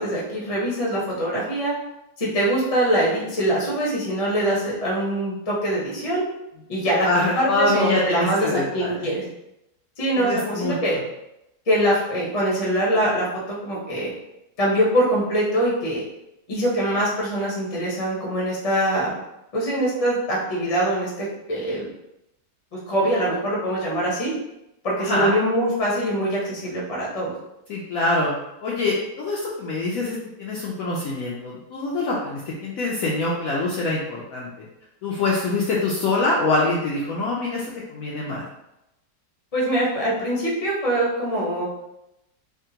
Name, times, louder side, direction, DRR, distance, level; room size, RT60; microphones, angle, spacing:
voice 1, 0.0-1.7 2.2-6.2 6.7-9.2 10.0-11.0 11.7-13.3 13.6-14.1 14.6-16.0 16.5-19.1 19.5-21.9 22.7-24.3 24.8-27.3 39.5-41.7, right 1 dB, 30° left, -5 dB, 0.7 m, -23 dB
voice 2, 7.0-9.1 10.1-10.7 25.0-25.3 27.7-28.3 28.6-34.6 35.0-38.4, left 2 dB, 70° left, -5 dB, 0.9 m, -24 dB
3.5 x 2.1 x 2.7 m, 0.88 s
omnidirectional pair, 1.8 m